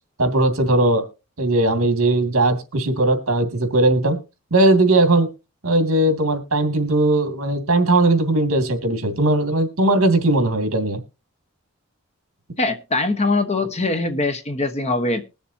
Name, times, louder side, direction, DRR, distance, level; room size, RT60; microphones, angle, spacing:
voice 1, 0.2-1.1 1.4-4.2 4.5-5.3 5.6-11.0, right 2 dB, 65° right, 2.5 m, -18 dB
voice 2, 12.6-15.2, left 2 dB, 30° left, 1.2 m, -22 dB
21.5 x 7.1 x 2.8 m
head